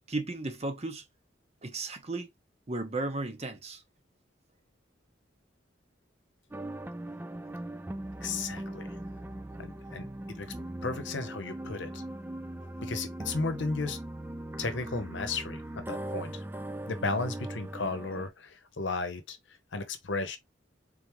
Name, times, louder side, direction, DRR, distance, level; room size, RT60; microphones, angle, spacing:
voice 1, 0.1-1.0 1.6-2.3 2.7-3.8, right 2 dB, 35° right, 0.8 m, -34 dB
sound 1, 6.5-18.3, right 1 dB, 10° right, 0.3 m, -40 dB
voice 2, 8.2-9.0 9.6-10.5 10.8-12.0 12.8-14.0 14.6-16.4 16.9-19.4 19.7-20.4, left 3 dB, 75° left, 0.9 m, -34 dB
3.9 x 3.4 x 3.0 m
head